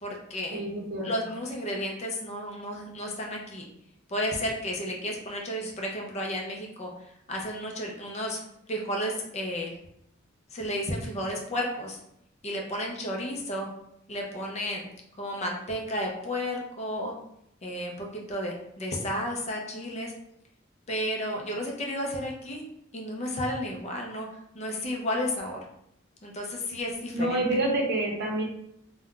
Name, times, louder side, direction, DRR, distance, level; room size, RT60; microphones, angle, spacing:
voice 1, 0.0-0.6 1.0-3.7 4.1-6.9 7.3-8.4 8.7-9.7 10.5-12.0 12.4-13.7 14.1-14.9 15.2-17.1 17.6-20.1 20.9-22.6 22.9-24.3 24.5-25.6 26.2-27.4, equal, 35° left, 0 dB, 0.5 m, -32 dB
voice 2, 0.5-1.1 27.1-28.4, right 1 dB, 55° right, -1 dB, 0.7 m, -27 dB
2.4 x 2.2 x 3.6 m, 0.76 s
head